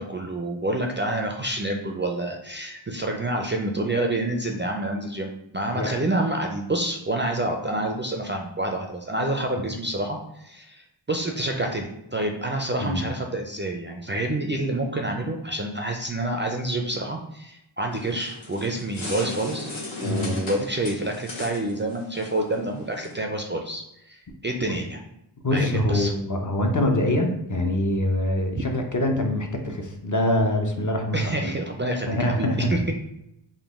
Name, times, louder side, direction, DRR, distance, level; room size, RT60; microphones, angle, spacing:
voice 1, 0.0-19.7 20.0-25.0 25.5-26.1 31.1-32.9, right 1 dB, 25° right, 2 dB, 0.4 m, -28 dB
sound 1, 17.9-23.2, left 2 dB, 75° left, 0.9 m, -37 dB
voice 2, 20.0-20.4 25.4-31.5 32.1-32.9, left 1 dB, 40° left, 2 dB, 0.6 m, -24 dB
3.7 x 2.2 x 3.5 m, 0.83 s
wide cardioid pair, 45°, 47 cm